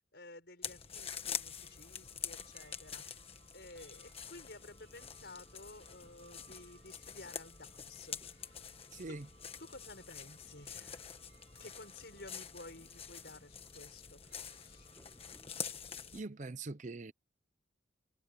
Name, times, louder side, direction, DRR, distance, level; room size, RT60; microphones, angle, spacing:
voice 1, 0.1-3.2 3.5-8.6 9.1-9.2 9.6-11.1 11.6-14.9, left 2 dB, 55° left, 6.8 m, -53 dB
sound 1, 0.6-16.2, left 7 dB, 30° left, 1.5 m, -46 dB
sound 2, 1.0-15.7, right 5 dB, 65° right, 4.0 m, -68 dB
sound 3, 4.5-16.2, left 1 dB, 15° left, 1.7 m, -68 dB
voice 2, 8.9-9.3 16.1-17.1, right 3 dB, 40° right, 0.7 m, -43 dB
head